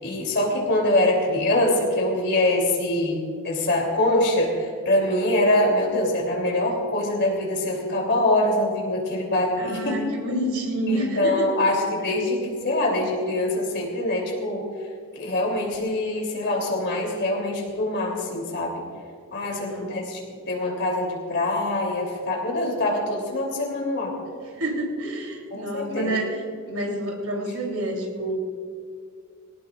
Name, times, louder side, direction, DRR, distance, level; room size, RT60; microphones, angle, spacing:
voice 1, 0.0-10.0 10.9-14.7 15.1-18.8 19.3-24.2 25.5-26.1, left 1 dB, 55° left, -1 dB, 3.2 m, -24 dB
voice 2, 9.6-11.5 19.4-20.1 24.5-28.4, right 1 dB, 75° right, 0 dB, 3.5 m, -29 dB
20.5 x 18.0 x 2.5 m, 2.2 s
head